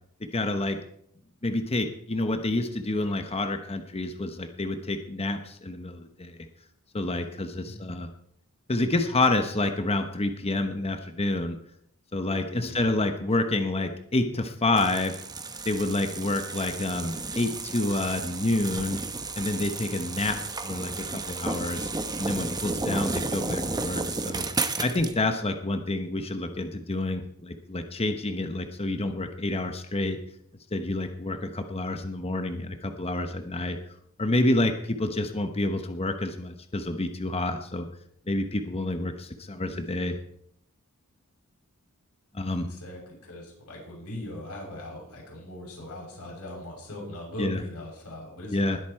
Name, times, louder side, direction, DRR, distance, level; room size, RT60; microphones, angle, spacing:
voice 1, 0.3-0.8 1.4-6.4 6.9-8.1 8.7-11.6 12.1-15.1 15.6-19.0 19.4-20.4 20.6-21.9 22.2-24.4 24.8-30.2 30.7-33.8 34.2-37.9 38.3-40.2 42.3-42.7 47.4-47.6 48.5-48.8, left 2 dB, 25° left, 7 dB, 1.0 m, -28 dB
voice 2, 12.5-12.9 23.0-23.3 39.5-40.0 42.7-48.8, left 1 dB, 80° left, -2 dB, 7.1 m, -40 dB
sound 1, 14.8-25.1, right 3 dB, 20° right, 1.0 m, -33 dB
20.0 x 8.3 x 4.5 m, 0.70 s
head